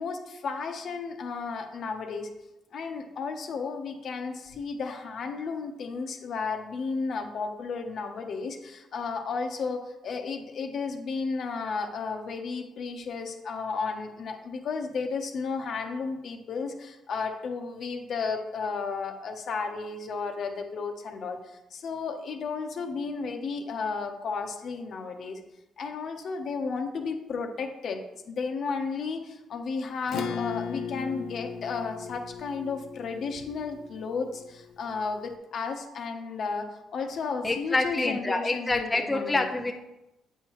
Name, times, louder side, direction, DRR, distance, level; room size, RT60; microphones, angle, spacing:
voice 1, 0.0-2.3 2.7-25.4 25.8-39.5, left 4 dB, 60° left, 5 dB, 1.0 m, -33 dB
Acoustic guitar / Strum, 30.1-35.0, left 6 dB, 80° left, 0.6 m, -37 dB
voice 2, 37.4-39.7, left 2 dB, 20° left, 4 dB, 0.6 m, -27 dB
8.2 x 5.7 x 3.1 m, 0.95 s
cardioid pair, 90°, 0 cm